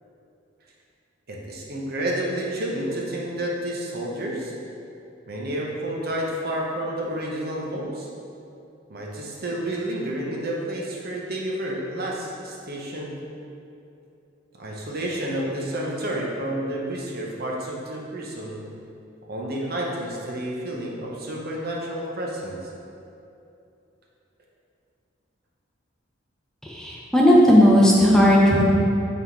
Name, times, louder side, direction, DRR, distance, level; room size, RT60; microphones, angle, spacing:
voice 1, 1.3-4.5 5.3-8.1 8.9-13.2 14.6-18.7 19.3-22.7, right 1 dB, 55° right, -2 dB, 0.9 m, -30 dB
voice 2, 26.6-28.6, equal, 5° left, -4 dB, 0.7 m, -15 dB
6.0 x 3.7 x 4.5 m, 2.7 s
head